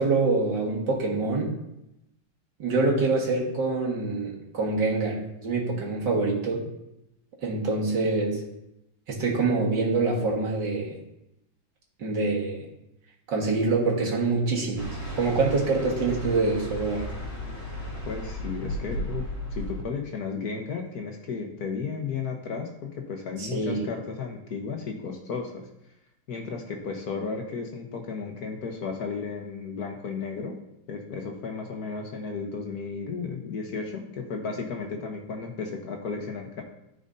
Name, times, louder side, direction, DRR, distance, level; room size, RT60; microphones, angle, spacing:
voice 1, 0.0-1.6 2.6-6.6 7.4-8.4 9.1-11.0 12.0-12.6 13.3-14.9 15.2-17.1 23.4-23.9, right 3 dB, 70° right, -2 dB, 2.4 m, -25 dB
sound 1, 14.8-19.8, equal, 35° left, 3.2 m, -34 dB
voice 2, 18.1-19.2 19.5-22.7 22.9-25.6 26.3-30.6 30.9-36.6, left 5 dB, 60° left, 2 dB, 1.5 m, -34 dB
13.5 x 5.3 x 2.7 m, 0.85 s
omnidirectional pair, 2.0 m